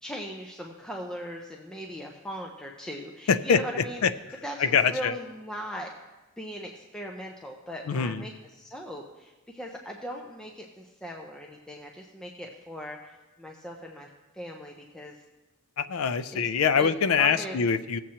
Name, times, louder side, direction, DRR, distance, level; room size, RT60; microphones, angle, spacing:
voice 1, 0.0-5.9 6.4-15.2 16.3-16.5 16.8-17.6, equal, 5° left, 0 dB, 0.6 m, -39 dB
voice 2, 3.3-3.6 4.0-4.1 4.6-5.1 7.9-8.2 15.8-18.0, left 6 dB, 85° left, 12 dB, 0.4 m, -24 dB
17.5 x 7.5 x 2.9 m, 1.1 s
head